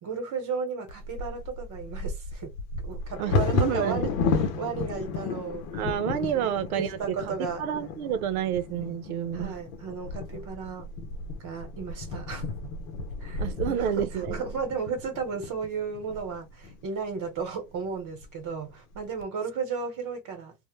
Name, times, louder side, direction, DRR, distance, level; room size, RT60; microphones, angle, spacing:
voice 1, 0.0-2.5 2.8-4.1 4.4-5.7 6.3-7.6 9.3-10.9 11.4-12.5 13.2-20.6, right 5 dB, 45° right, 1.0 m, -34 dB
Bird vocalization bird call bird song / Wind / Thunder, 0.9-16.8 17.4-17.5 17.9-18.3 18.7-19.2, left 4 dB, 75° left, 0.7 m, -33 dB
voice 2, 3.2-4.1 5.7-9.6 13.4-14.4, right 9 dB, 85° right, 0.6 m, -29 dB
2.1 x 2.0 x 3.0 m
hypercardioid pair, 80°, 42 cm